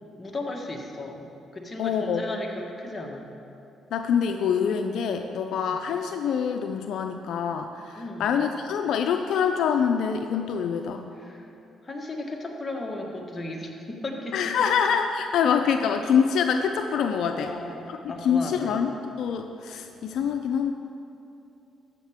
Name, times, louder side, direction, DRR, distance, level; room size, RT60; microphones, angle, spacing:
voice 1, 0.2-1.3 1.5-3.3 5.7-5.8 7.9-8.4 11.1-11.5 11.8-14.7 17.3-18.8, left 2 dB, 25° left, 0 dB, 1.3 m, -36 dB
voice 2, 1.8-2.2 3.9-11.1 14.3-17.5 18.2-20.7, left 7 dB, 75° left, 5 dB, 0.4 m, -25 dB
14.0 x 6.5 x 3.6 m, 2.8 s
cardioid pair, 90°, 0 cm